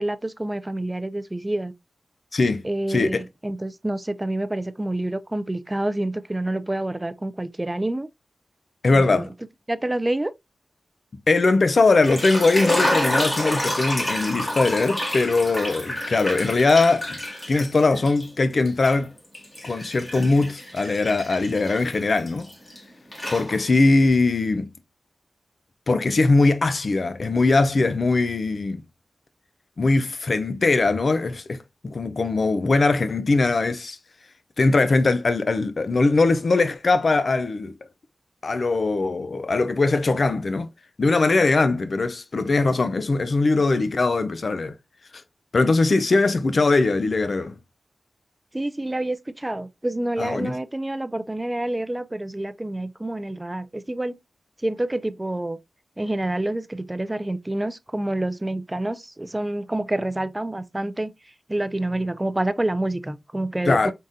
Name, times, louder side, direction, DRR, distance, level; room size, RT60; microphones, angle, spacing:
voice 1, 0.0-1.7 2.6-8.1 8.9-9.3 9.7-10.3 48.5-54.2 54.6-55.6 56.0-61.1 61.5-63.9, right 1 dB, 15° right, 0.3 m, -27 dB
voice 2, 2.3-2.6 2.9-3.2 8.8-9.3 11.3-17.2 17.5-19.1 19.6-22.5 23.3-24.7 25.9-28.8 29.8-34.0 34.6-37.7 38.4-40.7 41.0-44.7 45.5-47.6 50.2-50.5 63.7-63.9, left 3 dB, 55° left, 0.5 m, -21 dB
sound 1, 11.9-18.3 18.6-22.8 23.1-23.9, left 1 dB, 30° left, 1.8 m, -29 dB
4.0 x 3.6 x 2.5 m
wide cardioid pair, 110°, 0 cm